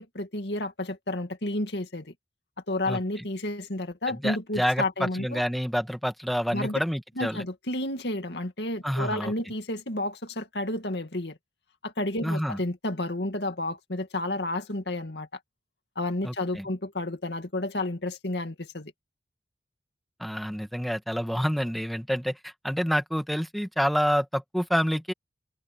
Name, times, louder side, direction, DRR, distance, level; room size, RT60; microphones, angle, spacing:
voice 1, 0.0-2.1 2.7-5.4 6.5-6.8 7.2-11.4 11.8-15.3 16.0-18.9, left 1 dB, 70° left, 2.4 m, -31 dB
voice 2, 4.1-7.4 8.8-9.3 12.2-12.6 16.2-16.6 20.2-25.1, equal, ahead, 1.7 m, -28 dB
head